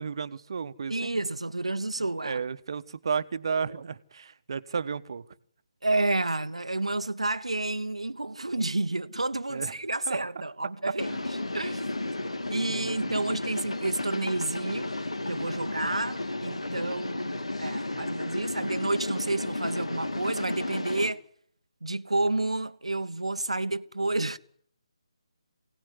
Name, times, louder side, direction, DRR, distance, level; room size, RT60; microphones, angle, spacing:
voice 1, 0.0-1.2 2.2-5.2 9.5-9.7 10.1-10.2 11.1-11.2 12.7-13.3, right 6 dB, 55° right, 1.2 m, -33 dB
voice 2, 0.9-2.4 5.8-11.9 12.5-14.9 15.3-21.2 21.8-24.4, right 2 dB, 90° right, 1.0 m, -30 dB
sound 1, 11.0-21.1, left 2 dB, 90° left, 2.3 m, -33 dB
24.5 x 18.0 x 9.7 m
figure-of-eight pair, 150°, 3 cm